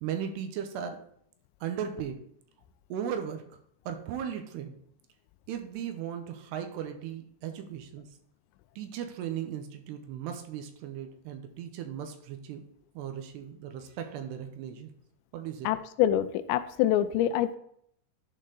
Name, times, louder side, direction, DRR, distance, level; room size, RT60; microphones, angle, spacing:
voice 1, 0.0-1.0 1.6-2.2 2.9-3.4 3.9-4.8 5.5-8.1 8.8-12.6 13.0-14.9 15.3-15.7, right 8 dB, 80° right, 6 dB, 2.8 m, -37 dB
voice 2, 15.6-17.6, left 11 dB, 85° left, 12 dB, 2.7 m, -26 dB
11.0 x 4.4 x 3.8 m, 0.68 s
omnidirectional pair, 5.0 m